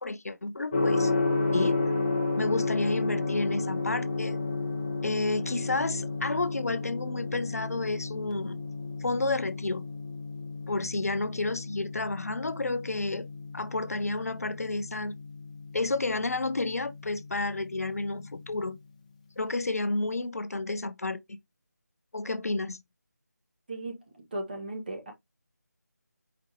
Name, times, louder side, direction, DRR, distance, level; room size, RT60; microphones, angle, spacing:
voice 1, 0.0-1.1 1.5-1.8 2.4-4.4 5.0-8.6 9.0-9.8 10.7-13.3 13.5-15.1 15.7-18.8 19.4-21.4 22.1-22.8, left 2 dB, 55° left, 0.5 m, -31 dB
Gong, 0.7-18.6, left 3 dB, 25° left, 0.7 m, -32 dB
voice 2, 23.7-25.1, right 2 dB, 35° right, 1.3 m, -37 dB
4.8 x 3.5 x 2.7 m
figure-of-eight pair, 160°, 10 cm